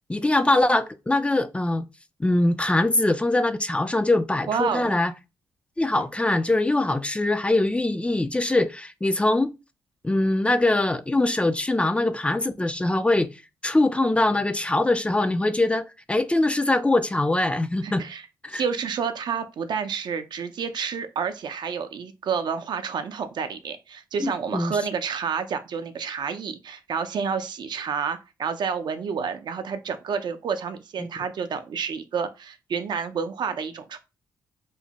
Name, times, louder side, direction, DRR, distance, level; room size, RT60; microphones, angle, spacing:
voice 1, 0.1-1.8 2.2-5.1 5.8-9.5 10.0-13.3 13.6-18.0 18.4-18.6 24.2-24.8, left 2 dB, 15° left, 0.3 m, -22 dB
voice 2, 4.5-5.0 17.8-18.3 18.5-34.0, right 6 dB, 60° right, 0.5 m, -29 dB
3.1 x 2.1 x 2.8 m
supercardioid pair, 55°, 9 cm